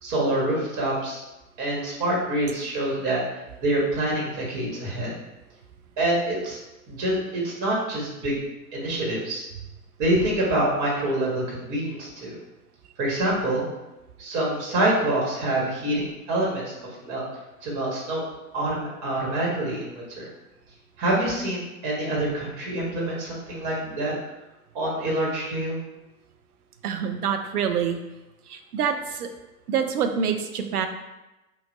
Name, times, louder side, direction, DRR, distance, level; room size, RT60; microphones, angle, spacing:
voice 1, 0.0-1.2 1.6-3.2 3.6-5.2 6.0-6.6 6.9-8.3 8.7-9.4 10.0-12.4 13.0-13.7 14.2-16.7 17.0-17.2 17.6-18.2 18.5-20.3 21.0-24.1 24.7-25.8, right 1 dB, 40° right, -3 dB, 1.5 m, -26 dB
voice 2, 26.8-28.0 28.5-29.3 29.7-30.9, right 7 dB, 85° right, 6 dB, 0.5 m, -26 dB
3.0 x 2.5 x 3.9 m, 0.99 s
hypercardioid pair, 100°, 44 cm